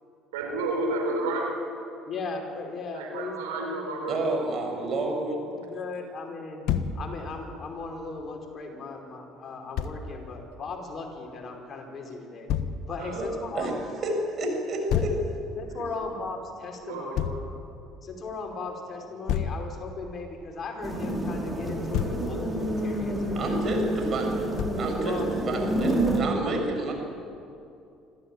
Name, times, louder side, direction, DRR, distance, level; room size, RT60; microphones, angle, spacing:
voice 1, 0.3-1.5 2.9-4.2 13.0-13.3 15.7-15.8 16.8-17.4, right 2 dB, 85° right, 0 dB, 5.0 m, -31 dB
voice 2, 2.1-4.0 5.6-6.7 6.9-12.5 12.9-13.7 14.9-15.0 15.5-17.2 18.0-23.9 25.0-25.5 26.0-26.9, left 3 dB, 40° left, 2 dB, 5.1 m, -37 dB
voice 3, 4.1-5.4 13.1-13.3 13.5-13.7 14.0-15.1 23.3-24.5 24.8-25.2 25.5-26.9, right 2 dB, 45° right, 2 dB, 6.9 m, -29 dB
Thump thud, 6.7-7.0 9.8-10.0 12.5-12.8 14.9-15.2 17.1-17.4 19.3-19.6 21.7-22.2 24.6-24.9, left 9 dB, 65° left, 1.3 m, -28 dB
sound 1, 20.8-26.2, right 1 dB, 10° right, 5.2 m, -29 dB
26.5 x 14.5 x 8.9 m, 2.6 s
hypercardioid pair, 65°, 0 cm